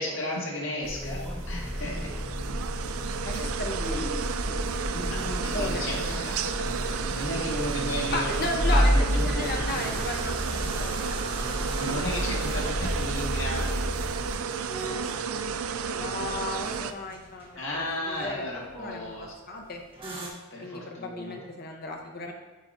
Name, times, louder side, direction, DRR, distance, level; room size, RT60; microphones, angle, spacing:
voice 1, 0.0-2.1 2.8-2.9 5.1-8.3 8.7-8.8 9.1-9.5 11.7-13.8 17.6-19.3 20.5-21.4, left 1 dB, 65° left, -4 dB, 1.7 m, -34 dB
sound 1, 0.8-14.3, equal, 5° left, 2.0 m, -30 dB
sound 2, 1.1-16.9, right 6 dB, 75° right, 0.4 m, -32 dB
voice 2, 3.2-4.1 5.5-6.3 8.1-11.0 15.9-18.4 18.8-19.2 19.5-19.8 20.6-22.3, left 2 dB, 45° left, 2 dB, 0.8 m, -35 dB
sound 3, 6.8-20.3, right 1 dB, 25° right, 1.1 m, -43 dB
8.5 x 4.8 x 2.7 m, 1.2 s
head